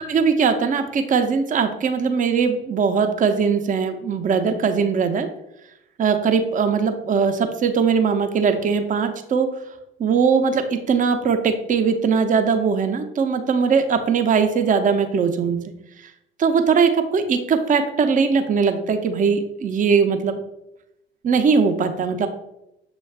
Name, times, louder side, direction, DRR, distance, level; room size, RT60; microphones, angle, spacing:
voice 1, 0.0-5.3 6.0-9.5 10.0-15.6 16.4-20.4 21.2-22.3, right 5 dB, 25° right, 7 dB, 0.6 m, -20 dB
6.8 x 2.3 x 3.3 m, 0.86 s
figure-of-eight pair, 60°, 29 cm